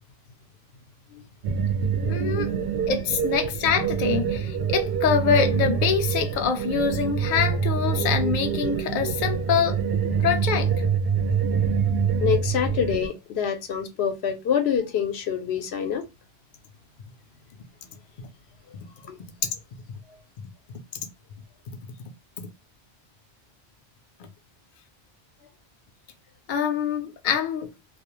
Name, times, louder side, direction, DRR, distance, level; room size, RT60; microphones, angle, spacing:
sound 1, 1.4-13.1, right 6 dB, 70° right, 0.7 m, -25 dB
voice 1, 2.1-2.5 2.9-9.8 10.2-10.7 26.5-27.7, left 7 dB, 60° left, 0.6 m, -25 dB
voice 2, 12.2-16.0 19.0-19.2, left 8 dB, 80° left, 0.9 m, -26 dB
2.3 x 2.0 x 2.9 m
omnidirectional pair, 1.1 m